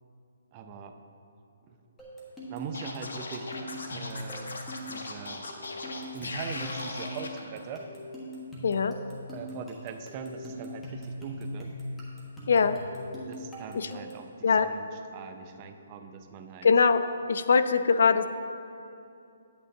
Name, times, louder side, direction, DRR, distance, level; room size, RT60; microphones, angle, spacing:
voice 1, 0.5-1.0 1.7-1.8 2.5-3.6 3.9-4.6 4.9-5.5 6.1-7.9 9.3-11.7 13.3-16.7, right 5 dB, 25° right, 6 dB, 0.4 m, -41 dB
sound 1, 2.0-14.3, equal, 5° left, 1.2 m, -41 dB
Scratching (performance technique), 2.7-7.3, left 3 dB, 90° left, 0.9 m, -38 dB
voice 2, 8.6-8.9 12.5-12.8 13.7-13.9 14.4-14.7 16.6-17.0 17.3-18.3, left 5 dB, 65° left, 11 dB, 0.3 m, -22 dB
9.2 x 8.6 x 2.7 m, 2.6 s
hypercardioid pair, 165°, 0 cm